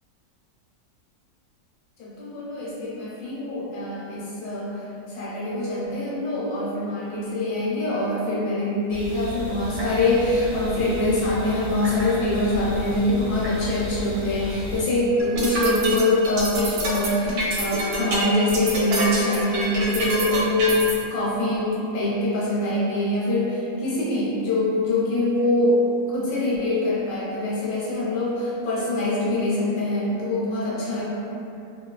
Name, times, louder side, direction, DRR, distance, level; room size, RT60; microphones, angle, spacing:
voice 1, 2.0-4.8 5.1-20.8 21.1-25.8 26.1-31.0, left 1 dB, 75° left, -7 dB, 1.4 m, -24 dB
sound 1, 8.9-14.8, left 2 dB, 65° right, 1.1 m, -34 dB
sound 2, 15.2-20.9, right 2 dB, 85° right, 1.3 m, -26 dB
3.1 x 2.6 x 2.2 m, 2.6 s
omnidirectional pair, 1.9 m